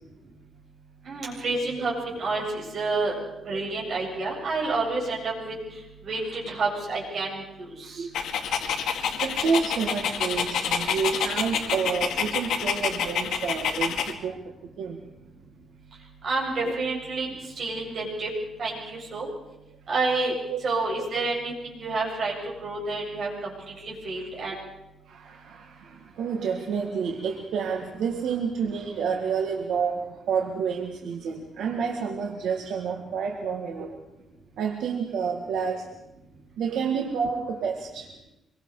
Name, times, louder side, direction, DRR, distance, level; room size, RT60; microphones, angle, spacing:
voice 1, 1.0-3.1 3.4-5.5 6.0-8.0 16.2-17.3 17.6-18.3 18.6-19.3 19.9-20.3 20.6-22.3 22.6-23.5 23.8-24.5, right 3 dB, 45° right, -2 dB, 7.8 m, -29 dB
voice 2, 7.8-15.0 20.5-20.6 25.1-34.0 34.6-35.9 36.6-38.1, right 6 dB, 75° right, 2 dB, 1.9 m, -29 dB
Dog, 8.1-14.1, left 7 dB, 85° left, 2.2 m, -28 dB
25.5 x 23.0 x 4.9 m, 0.92 s
cardioid pair, 170°, 0 cm